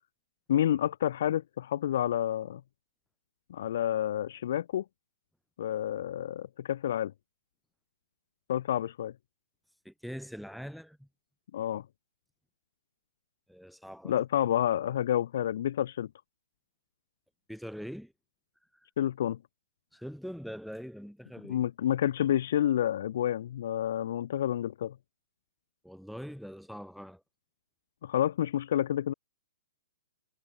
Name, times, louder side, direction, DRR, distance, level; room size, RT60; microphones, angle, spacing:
voice 1, 0.5-2.6 3.5-4.8 5.6-7.1 8.5-9.1 11.5-11.8 14.0-16.1 19.0-19.4 21.5-25.0 28.0-29.1, left 11 dB, 45° left, 1.7 m, -29 dB
voice 2, 9.8-11.1 13.5-14.2 17.5-18.1 18.7-18.9 19.9-21.6 25.8-27.2, equal, ahead, 5.4 m, -43 dB
hypercardioid pair, 175°, 0 cm